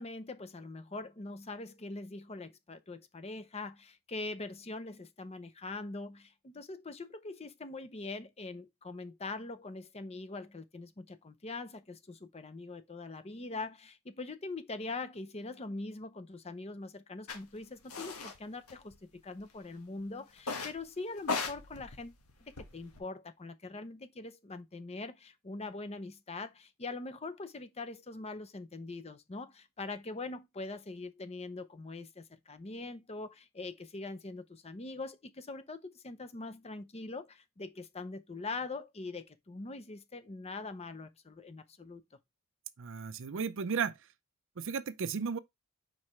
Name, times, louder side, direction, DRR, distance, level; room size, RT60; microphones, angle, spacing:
voice 1, 0.0-22.1 22.4-42.0, left 3 dB, 30° left, 0.6 m, -43 dB
sound 1, 17.3-17.4 17.9-18.4 18.7-19.4 20.4-20.8 21.2-23.0, left 4 dB, 85° left, 1.5 m, -38 dB
voice 2, 42.8-44.0 44.6-45.4, right 6 dB, 60° right, 0.5 m, -34 dB
4.8 x 4.7 x 4.3 m
head